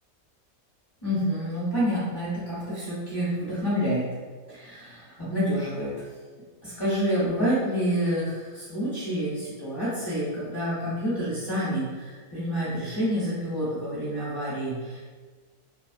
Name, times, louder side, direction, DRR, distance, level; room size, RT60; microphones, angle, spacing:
voice 1, 1.0-4.0 4.5-5.9 6.6-15.2, equal, 20° left, -11 dB, 0.8 m, -28 dB
2.3 x 2.3 x 2.5 m, 1.4 s
omnidirectional pair, 1.4 m